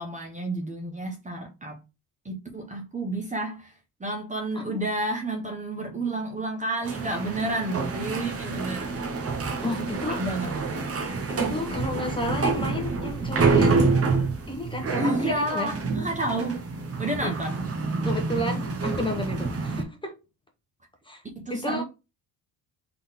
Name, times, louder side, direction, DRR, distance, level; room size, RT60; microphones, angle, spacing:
voice 1, 0.0-1.8 2.2-9.0 9.8-10.5 15.0-16.7 17.0-17.6 21.4-21.8, right 1 dB, 20° right, 1.0 m, -30 dB
Old Elevator, 6.8-19.8, right 4 dB, 35° right, 1.1 m, -27 dB
voice 2, 9.6-10.2 11.3-13.9 14.5-15.7 17.2-17.3 18.0-20.2 21.0-21.2 21.5-21.8, left 1 dB, 10° left, 1.2 m, -32 dB
3.9 x 3.8 x 3.6 m
cardioid pair, 130°, 40 cm